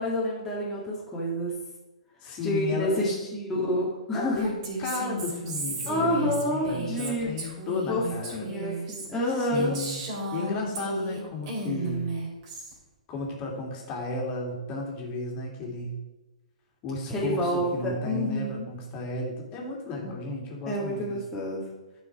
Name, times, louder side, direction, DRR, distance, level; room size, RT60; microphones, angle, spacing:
voice 1, 0.0-1.5 2.4-4.6 5.9-7.3 7.9-8.0 8.3-9.8 17.1-18.7 20.6-21.7, left 1 dB, 10° left, -7 dB, 1.9 m, -28 dB
voice 2, 2.2-3.3 4.1-4.5 4.8-8.5 9.4-10.0 10.3-12.1 13.1-16.0 16.8-21.2, left 2 dB, 30° left, 0 dB, 2.5 m, -34 dB
Female speech woman speaking, 4.4-11.2 11.5-12.7, right 2 dB, 45° right, 2.8 m, -34 dB
11.0 x 5.6 x 4.7 m, 1.1 s
figure-of-eight pair, 120°, 4 cm